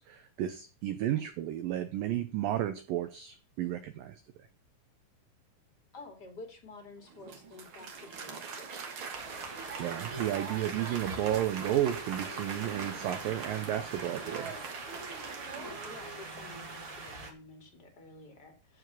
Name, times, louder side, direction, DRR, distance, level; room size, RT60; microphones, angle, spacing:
voice 1, 0.0-4.2 9.8-14.6, right 12 dB, 90° right, 1.9 m, -32 dB
voice 2, 0.9-1.3 5.9-8.8 15.5-18.8, left 2 dB, 30° left, 2.2 m, -50 dB
Applause, 7.0-16.6, right 5 dB, 65° right, 1.3 m, -42 dB
sound 1, 9.1-17.3, right 3 dB, 40° right, 2.6 m, -44 dB
14.5 x 4.9 x 6.2 m
omnidirectional pair, 5.1 m